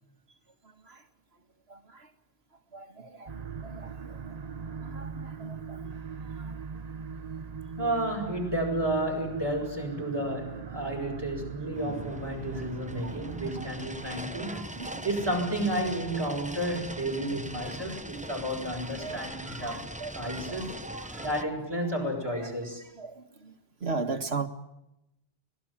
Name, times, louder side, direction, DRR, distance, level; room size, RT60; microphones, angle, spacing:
voice 1, 0.6-1.0 1.7-2.1 2.7-3.3 3.6-4.4 4.8-5.8 6.2-6.8 9.5-9.6 11.8-12.0 12.9-15.1 16.7-16.8 17.6-18.0 18.7-21.5 22.3-22.5 22.9-23.5 23.8-24.5, right 4 dB, 85° right, 7 dB, 2.1 m, -40 dB
sound 1, 3.3-13.9, right 5 dB, 40° right, 1.1 m, -40 dB
voice 2, 7.8-14.6 15.0-19.8 20.1-20.8 21.2-22.8, right 1 dB, 25° right, 0 dB, 7.5 m, -31 dB
sound 2, 11.7-21.4, right 1 dB, 10° right, 1.0 m, -41 dB
25.0 x 20.0 x 7.6 m, 0.91 s
omnidirectional pair, 1.0 m